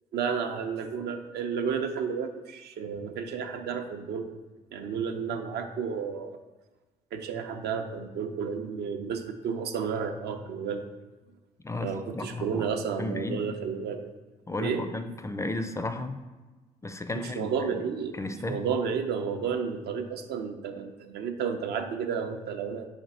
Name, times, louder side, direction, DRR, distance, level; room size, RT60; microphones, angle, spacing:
voice 1, 0.1-4.3 4.7-6.3 7.1-10.8 11.8-14.1 14.6-14.9 17.1-18.2 18.5-22.9, right 6 dB, 60° right, 6 dB, 0.6 m, -32 dB
voice 2, 11.6-12.7 13.0-13.4 14.5-16.2 16.8-17.5 18.2-18.6, left 2 dB, 15° left, 8 dB, 0.4 m, -33 dB
5.0 x 2.5 x 4.2 m, 1.2 s
figure-of-eight pair, 50°, 19 cm